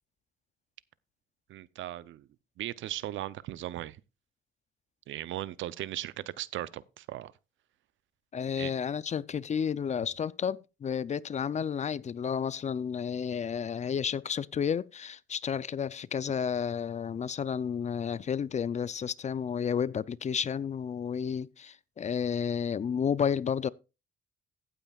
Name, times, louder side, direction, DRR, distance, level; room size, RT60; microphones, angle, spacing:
voice 1, 1.5-2.3 2.6-4.0 5.1-7.3 8.6-8.7, right 14 dB, 75° right, 0.6 m, -37 dB
voice 2, 8.3-23.7, left 7 dB, 35° left, 0.4 m, -31 dB
15.5 x 8.9 x 2.4 m
cardioid pair, 90°, 20 cm